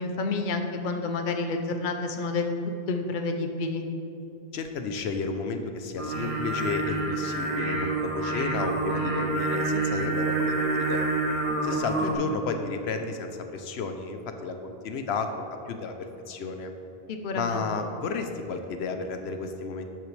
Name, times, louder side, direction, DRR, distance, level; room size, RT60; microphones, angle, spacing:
voice 1, 0.0-2.5 2.9-3.8 11.8-12.2 17.1-17.7, left 3 dB, 55° left, 5 dB, 0.8 m, -30 dB
voice 2, 4.5-11.0 11.6-15.3 15.7-16.7 17.3-19.9, left 4 dB, 85° left, 6 dB, 0.9 m, -32 dB
Singing, 6.0-12.1, right 2 dB, 35° right, 1.2 m, -28 dB
11.5 x 7.7 x 3.3 m, 2.8 s
omnidirectional pair, 1.0 m